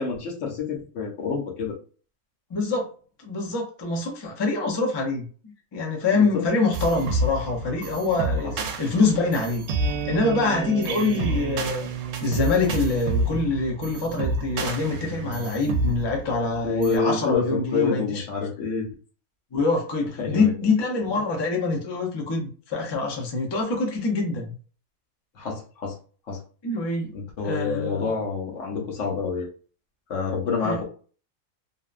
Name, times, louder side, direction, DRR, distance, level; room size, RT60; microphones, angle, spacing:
voice 1, 0.0-1.8 6.1-6.5 16.6-18.9 20.2-20.5 25.3-26.0 26.3-26.4 27.1-29.5 30.1-30.8, left 4 dB, 70° left, -1 dB, 1.1 m, -27 dB
voice 2, 2.5-2.9 3.2-5.3 5.7-9.7 10.1-11.9 12.2-18.2 19.5-24.5 26.6-27.2 27.4-28.1 30.6-30.8, left 3 dB, 35° left, 0 dB, 0.4 m, -25 dB
sound 1, 6.7-17.0, right 3 dB, 65° right, 0.8 m, -29 dB
2.7 x 2.1 x 2.4 m, 0.40 s
omnidirectional pair, 1.4 m